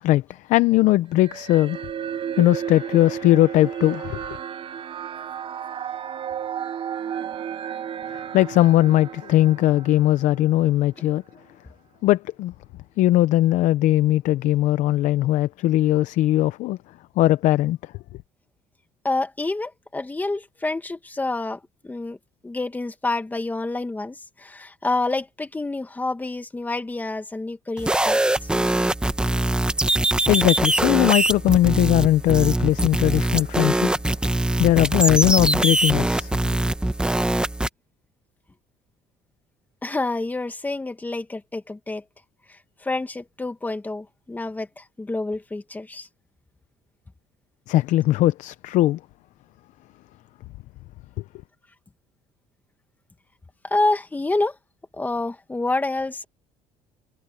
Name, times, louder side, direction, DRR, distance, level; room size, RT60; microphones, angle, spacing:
voice 1, 0.0-1.8 2.4-4.4 8.1-11.2 12.0-12.5 13.0-16.8 17.2-17.9 30.3-33.9 34.6-36.3 47.7-49.0 51.2-51.3, left 15 dB, 70° left, 0.6 m, -19 dB
sound 1, 1.2-10.7, right 8 dB, 40° right, 0.9 m, -33 dB
voice 2, 19.0-22.2 22.4-28.5 39.8-42.0 42.5-46.1 53.6-54.6 54.9-56.3, left 2 dB, 15° left, 2.0 m, -28 dB
sound 2, 27.8-37.7, right 1 dB, 5° right, 1.2 m, -22 dB
cardioid pair, 130°, 13 cm